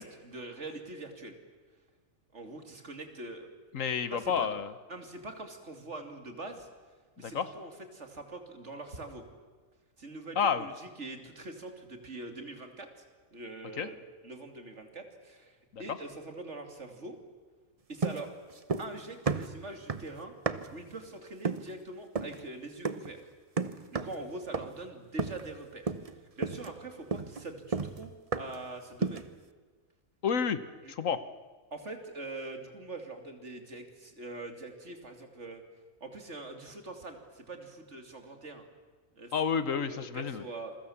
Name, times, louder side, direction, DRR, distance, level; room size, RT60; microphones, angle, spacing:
voice 1, 0.0-1.4 2.3-3.5 4.1-4.5 4.9-6.7 7.2-9.2 10.0-12.9 13.3-14.0 14.2-17.2 17.9-18.3 18.8-20.3 20.7-23.2 23.9-25.9 26.2-28.1 28.4-29.3 30.8-31.2 31.7-35.6 36.0-38.6 39.1-39.3 39.9-40.8, right 2 dB, 55° right, 5 dB, 3.1 m, -43 dB
voice 2, 3.7-4.7 7.2-7.5 10.4-10.7 13.8-13.9 15.7-16.0 30.2-30.6 30.9-31.2 39.3-40.4, left 6 dB, 70° left, 13 dB, 1.5 m, -30 dB
sound 1, 18.0-19.0 19.3-20.8 21.4-21.7 22.2-22.4 22.8-23.2 23.6-24.2 24.5-24.9 25.2-25.6 25.9-26.1 26.4-28.7 29.0-29.4, right 4 dB, 30° right, 0.9 m, -33 dB
28.0 x 22.5 x 7.3 m, 1.4 s
omnidirectional pair, 1.4 m